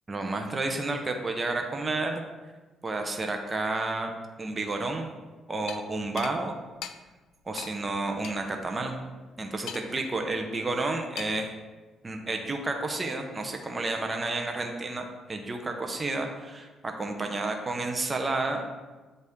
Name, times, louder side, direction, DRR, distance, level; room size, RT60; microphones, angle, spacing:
voice 1, 0.1-2.2 2.8-4.1 4.4-5.1 5.5-6.6 7.5-9.0 9.4-11.5 12.0-18.6, right 2 dB, 25° right, 3 dB, 0.8 m, -31 dB
sound 1, 5.7-5.8 6.2-6.3 6.8-6.9 7.6-7.7 8.2-8.3 9.7-10.1 11.2-11.5, left 9 dB, 85° left, 0.3 m, -38 dB
8.0 x 4.0 x 3.6 m, 1.2 s
cardioid pair, 90°, 0 cm